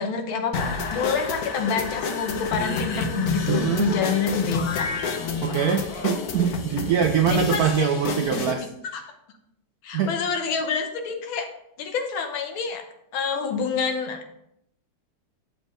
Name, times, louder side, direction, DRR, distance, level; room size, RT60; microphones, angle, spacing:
voice 1, 0.0-4.9 5.2-5.6 7.3-7.9 8.9-9.0 9.8-11.5 11.8-12.8 13.1-14.3, left 5 dB, 85° left, 5 dB, 1.8 m, -27 dB
sound 1, 0.5-8.5, left 4 dB, 60° left, 1.2 m, -29 dB
voice 2, 3.5-3.9 5.4-9.0 9.9-10.1, right 7 dB, 80° right, 6 dB, 0.8 m, -24 dB
7.1 x 6.8 x 3.8 m, 0.75 s
omnidirectional pair, 2.1 m